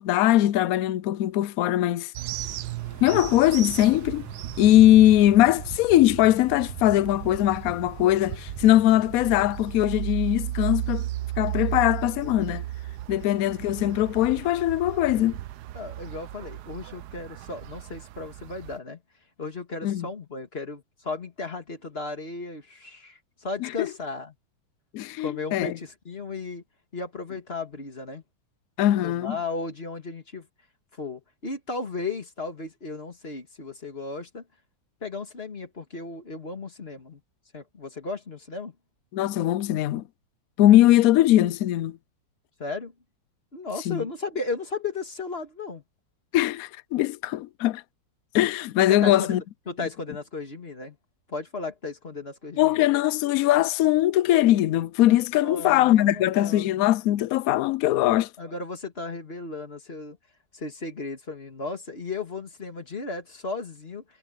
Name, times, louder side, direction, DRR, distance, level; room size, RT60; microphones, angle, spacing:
voice 1, 0.0-2.1 3.0-4.3 4.6-11.1 11.4-12.6 13.1-15.4 19.8-20.1 23.6-23.9 24.9-25.7 28.8-29.4 39.1-40.0 40.6-42.0 43.9-44.0 46.3-47.8 48.3-49.4 49.8-49.9 52.6-58.3, left 14 dB, 80° left, 0.8 m, -21 dB
sound 1, 2.1-18.8, right 14 dB, 70° right, 1.0 m, -35 dB
sound 2, 2.3-9.8, left 2 dB, 10° left, 1.3 m, -47 dB
voice 2, 15.7-19.0 19.4-24.3 25.2-26.6 26.9-28.2 29.0-30.5 30.9-34.4 35.0-37.2 37.5-38.7 42.6-42.9 43.5-45.8 48.9-51.0 51.3-52.8 55.3-56.8 58.4-60.2 60.5-64.0, left 3 dB, 30° left, 2.5 m, -35 dB
omnidirectional pair, 2.1 m